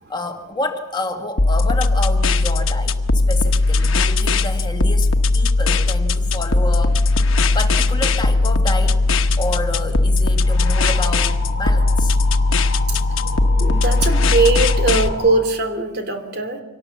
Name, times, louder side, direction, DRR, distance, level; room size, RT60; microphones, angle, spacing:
voice 1, 0.1-7.1 7.5-9.0 9.4-12.1 13.3-13.8, left 2 dB, 20° left, 4 dB, 1.9 m, -29 dB
sound 1, 1.4-15.1, left 3 dB, 75° left, 1.1 m, -18 dB
sound 2, 1.6-15.4, equal, 70° right, 2.0 m, -40 dB
sound 3, 10.4-15.4, left 4 dB, 50° left, 2.5 m, -33 dB
voice 2, 13.6-16.6, right 3 dB, 55° right, 6 dB, 3.0 m, -20 dB
25.0 x 18.5 x 7.2 m, 1.0 s
head